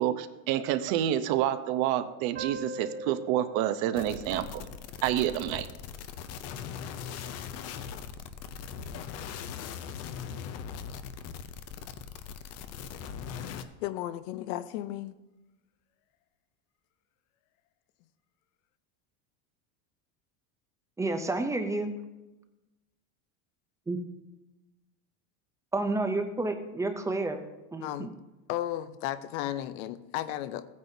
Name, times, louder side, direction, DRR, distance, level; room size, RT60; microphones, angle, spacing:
voice 1, 0.0-4.7 5.0-5.7, right 11 dB, 55° right, 11 dB, 0.8 m, -28 dB
sound 1, 2.3-5.5, right 2 dB, 30° right, 1.7 m, -43 dB
sound 2, 4.0-13.6, left 7 dB, 35° left, 0.6 m, -40 dB
voice 2, 13.4-15.2 27.8-28.1 28.5-30.7, left 13 dB, 75° left, 14 dB, 0.7 m, -34 dB
voice 3, 21.0-21.9 23.9-24.0 25.7-27.4 27.7-28.1, right 2 dB, 10° right, 6 dB, 0.4 m, -30 dB
15.0 x 9.5 x 2.7 m, 1.0 s
cardioid pair, 150°, 43 cm